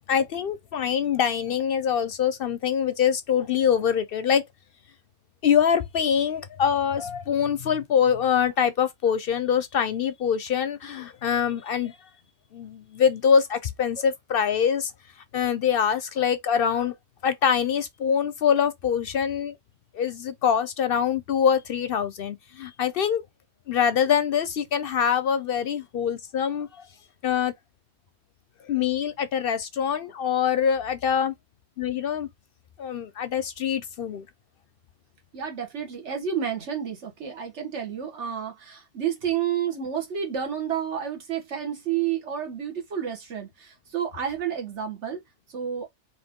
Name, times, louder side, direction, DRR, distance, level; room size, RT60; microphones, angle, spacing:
voice 1, 0.1-4.5 5.4-12.0 12.5-14.9 15.3-16.9 17.2-19.5 19.9-23.2 23.7-26.9 27.2-27.5 28.7-31.3 31.8-32.3 32.8-34.2, left 8 dB, 60° left, 0.7 m, -24 dB
voice 2, 35.3-45.2 45.5-45.9, right 8 dB, 75° right, 1.5 m, -30 dB
4.1 x 2.6 x 3.6 m
omnidirectional pair, 1.2 m